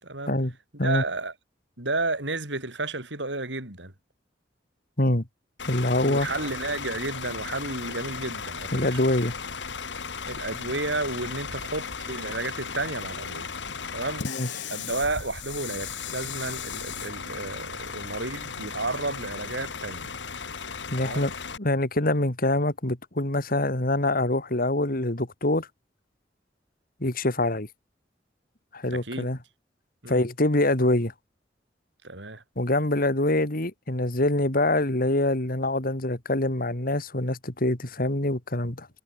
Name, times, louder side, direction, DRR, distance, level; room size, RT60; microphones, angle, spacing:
voice 1, 0.0-0.4 0.8-1.3 1.8-3.9 6.0-9.0 10.3-13.5 13.9-14.3 14.7-20.1 21.0-21.3 28.9-29.3 30.0-30.2 32.0-32.4, right 2 dB, 80° right, 7.0 m, -32 dB
Bus / Idling, 5.6-21.6, left 6 dB, 90° left, 1.9 m, -36 dB
voice 2, 5.7-6.3 8.7-9.3 14.2-14.5 20.9-21.3 21.6-25.7 27.0-27.7 28.7-29.4 30.1-31.1 32.6-38.9, left 1 dB, 55° left, 2.8 m, -25 dB
head